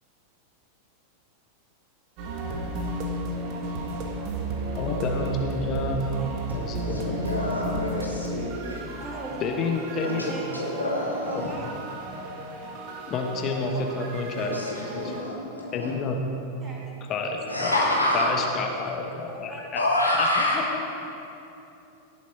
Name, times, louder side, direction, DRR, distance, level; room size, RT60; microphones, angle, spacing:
sound 1, 2.2-15.2, right 1 dB, 40° right, 1.6 m, -33 dB
voice 1, 3.9-4.3 6.2-6.3 8.3-9.5 10.3-11.7 16.6-17.3 19.5-19.6 20.1-20.7, right 3 dB, 20° right, -3 dB, 2.9 m, -42 dB
voice 2, 4.7-6.1 6.5-7.2 9.4-10.3 11.3-11.4 13.1-15.1 15.7-16.2 17.1-17.8 18.1-19.8 20.1-20.3 20.5-20.6, left 3 dB, 30° left, 2 dB, 1.3 m, -29 dB
voice 3, 6.7-8.8 10.0-11.4 14.3-15.9 17.5-18.3 19.8-20.6, left 1 dB, 85° left, -6 dB, 3.0 m, -27 dB
17.5 x 7.9 x 4.6 m, 2.9 s
figure-of-eight pair, 90°, 0 cm